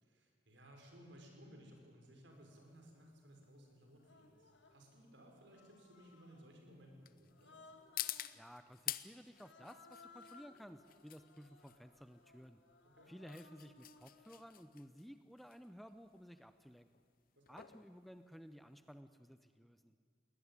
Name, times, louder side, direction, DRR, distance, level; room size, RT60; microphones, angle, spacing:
voice 1, 0.0-7.6 12.9-13.1 17.4-17.6, equal, 70° right, 2 dB, 5.2 m, -60 dB
sound 1, 2.3-19.0, left 13 dB, 50° left, 0.7 m, -50 dB
Human voice, 2.8-3.0 4.0-4.9 5.5-6.6 7.3-8.4 9.3-14.6, left 3 dB, 70° left, 1.8 m, -63 dB
voice 2, 8.3-12.6 13.1-16.9 17.5-19.9, equal, ahead, 10 dB, 0.5 m, -55 dB
21.0 x 19.0 x 9.8 m, 2.1 s
head